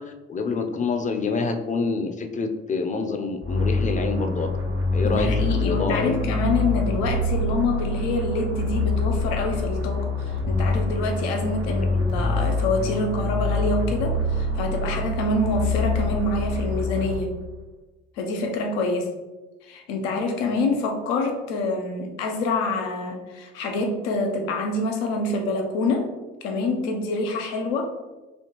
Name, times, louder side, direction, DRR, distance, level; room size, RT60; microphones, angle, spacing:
voice 1, 0.0-4.5 4.9-6.2 11.6-12.0, left 4 dB, 25° left, 6 dB, 0.5 m, -27 dB
sound 1, 3.4-17.5, left 2 dB, 90° right, 1.0 m, -25 dB
voice 2, 5.0-17.4 18.2-19.1 19.6-26.1 26.4-27.9, left 2 dB, 80° left, 3 dB, 0.7 m, -26 dB
4.3 x 2.8 x 3.0 m, 1.2 s
hypercardioid pair, 50°, 31 cm